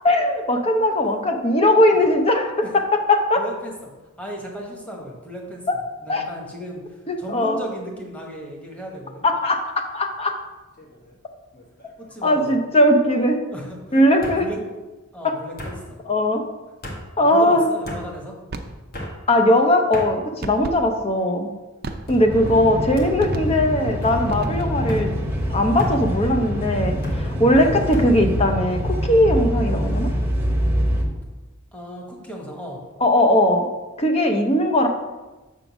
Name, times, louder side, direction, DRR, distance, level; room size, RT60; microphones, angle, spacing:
voice 1, 0.0-3.4 6.1-6.2 7.1-7.6 9.2-9.6 9.9-10.4 12.2-13.4 13.9-14.5 15.2-15.3 16.1-16.4 17.2-17.6 19.3-21.5 22.1-25.1 25.5-30.1 33.0-33.6 34.0-34.9, left 1 dB, 30° left, 4 dB, 0.6 m, -19 dB
voice 2, 3.4-3.9 4.2-5.6 6.0-6.8 7.2-9.3 12.0-12.5 13.5-14.6 15.1-16.0 17.2-18.4 22.1-22.9 23.4-23.6 24.6-24.8 31.7-32.8, equal, 5° left, -1 dB, 1.2 m, -36 dB
sound 1, 10.8-11.2 11.5-12.1 13.2-13.3 14.2-14.4 15.6-15.8 16.8-17.0 17.8-18.0 18.9-19.2 19.9-20.1 20.9-21.3 22.1-22.3 23.0-23.1 24.0-24.2 24.9-25.1 25.8-26.0 27.0-27.2 27.9-28.1, equal, 45° left, 1.3 m, -33 dB
sound 2, 18.5-18.8 20.4-20.8 21.8-22.3 23.2-23.7 24.3-24.9, right 2 dB, 45° right, 0.5 m, -34 dB
sound 3, 22.3-31.0, equal, 10° right, 0.9 m, -25 dB
7.0 x 3.8 x 6.0 m, 1.1 s
head